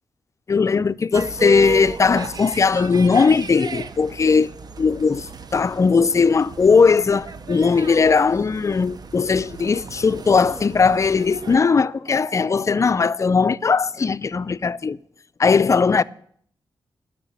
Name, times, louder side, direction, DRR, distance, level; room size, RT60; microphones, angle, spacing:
voice 1, 0.5-4.5 4.8-15.0 15.4-16.0, left 5 dB, 40° left, 0.4 m, -18 dB
sound 1, 1.1-11.6, right 4 dB, 50° right, 0.7 m, -34 dB
sound 2, 7.7-8.6 11.4-11.6 12.0-12.9, left 2 dB, 35° right, 2.8 m, -41 dB
11.5 x 6.5 x 9.3 m
cardioid pair, 90°, 8 cm